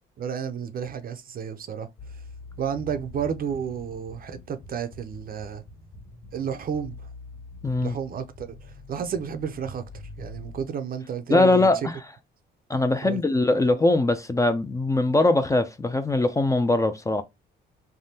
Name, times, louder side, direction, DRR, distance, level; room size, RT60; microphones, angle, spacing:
voice 1, 0.2-1.9 2.6-5.6 6.3-7.0 7.8-8.5 8.9-9.8 10.2-11.7 13.0-13.7, right 7 dB, 45° right, 0.5 m, -31 dB
sound 1, 2.0-10.6, left 2 dB, 65° left, 1.5 m, -44 dB
voice 2, 7.6-7.9 11.3-12.0 12.7-17.2, left 2 dB, 15° left, 0.4 m, -21 dB
3.4 x 2.2 x 2.7 m
cardioid pair, 90°, 20 cm